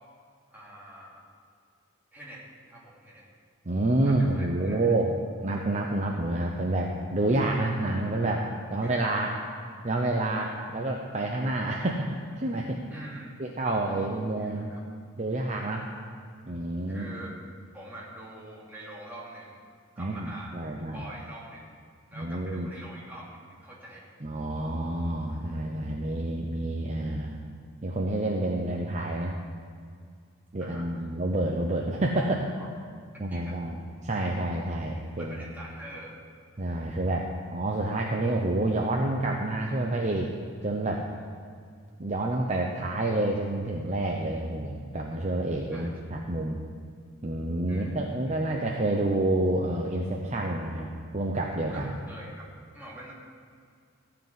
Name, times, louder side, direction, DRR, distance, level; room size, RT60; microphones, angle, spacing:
voice 1, 0.5-1.2 2.1-2.4 2.7-3.3 4.0-4.9 8.7-9.1 12.9-13.3 13.9-14.8 16.9-17.3 17.7-19.6 20.0-20.6 20.9-21.7 22.1-24.1 30.6-30.9 32.2-32.7 33.3-33.6 35.2-36.2 45.7-45.9 47.7-48.1 51.7-52.5 52.7-53.1, right 1 dB, 10° right, -6 dB, 2.6 m, -45 dB
voice 2, 3.7-5.1 5.4-9.3 9.8-12.1 12.4-12.8 13.4-14.7 15.2-15.9 16.5-17.1 20.0-21.0 22.1-22.7 24.2-27.4 27.8-29.4 30.5-32.4 33.2-35.4 36.6-40.3 40.6-41.1 42.0-46.6 47.2-51.9, right 2 dB, 35° right, 0 dB, 0.7 m, -28 dB
14.5 x 5.0 x 9.3 m, 2.2 s
head